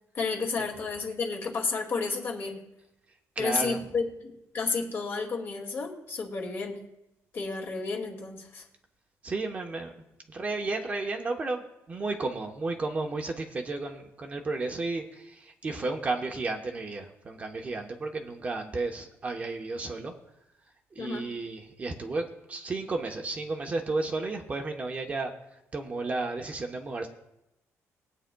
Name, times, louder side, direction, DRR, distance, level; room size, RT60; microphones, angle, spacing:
voice 1, 0.1-2.6 3.4-6.8 7.3-8.6 21.0-21.3, left 4 dB, 45° left, 1 dB, 2.2 m, -31 dB
voice 2, 3.4-3.8 9.2-9.9 10.3-20.1 20.9-25.3 25.7-27.1, right 3 dB, 25° right, 2 dB, 0.9 m, -33 dB
21.5 x 8.9 x 2.3 m, 0.88 s
cardioid pair, 170°, 6 cm